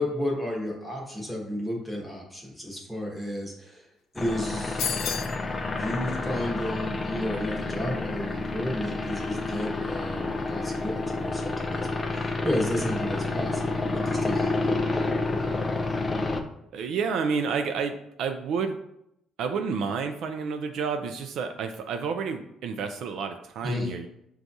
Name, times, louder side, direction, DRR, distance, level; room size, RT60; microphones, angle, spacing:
voice 1, 0.0-3.9 4.1-4.9 5.7-13.6 13.9-14.5 23.6-23.9, left 1 dB, ahead, -2 dB, 1.0 m, -32 dB
sound 1, 4.2-16.4, left 3 dB, 20° left, 0.3 m, -29 dB
sound 2, 4.8-5.4, left 8 dB, 80° left, 0.5 m, -30 dB
voice 2, 16.7-18.8 19.4-24.1, right 5 dB, 70° right, 6 dB, 0.3 m, -30 dB
6.0 x 2.3 x 2.6 m, 0.78 s
cardioid pair, 135°, 0 cm